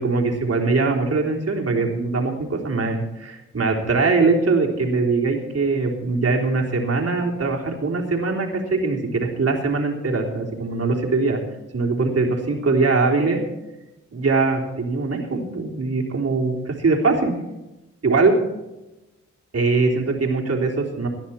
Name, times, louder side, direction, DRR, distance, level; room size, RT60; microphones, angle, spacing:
voice 1, 0.0-11.4 11.7-13.4 14.1-17.3 18.0-18.3 19.5-21.1, right 3 dB, 50° right, 0 dB, 3.7 m, -22 dB
19.0 x 11.0 x 4.3 m, 1.0 s
cardioid pair, 60°, 31 cm